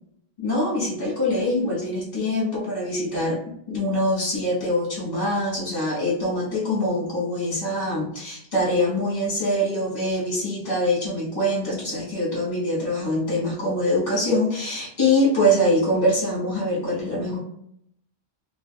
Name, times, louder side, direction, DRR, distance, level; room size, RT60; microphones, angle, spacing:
voice 1, 0.4-3.4 3.7-17.4, left 1 dB, 45° left, -6 dB, 1.3 m, -24 dB
2.6 x 2.4 x 2.2 m, 0.73 s
omnidirectional pair, 1.0 m